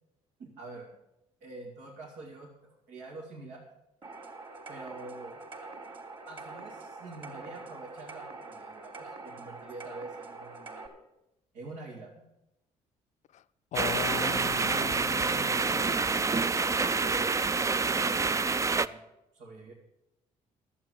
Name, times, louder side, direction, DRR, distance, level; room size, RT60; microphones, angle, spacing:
voice 1, 0.4-0.9 1.4-3.6 4.7-5.4 6.3-10.9 11.5-12.2 14.2-14.7 15.5-19.0 19.3-19.7, right 3 dB, 85° right, 2.5 m, -46 dB
sound 1, 4.0-10.9, right 3 dB, 35° right, 3.0 m, -45 dB
voice 2, 13.7-16.0, left 11 dB, 55° left, 0.5 m, -38 dB
sound 2, 13.7-18.9, right 4 dB, 20° right, 0.4 m, -27 dB
11.5 x 8.6 x 7.5 m
supercardioid pair, 80°, 14 cm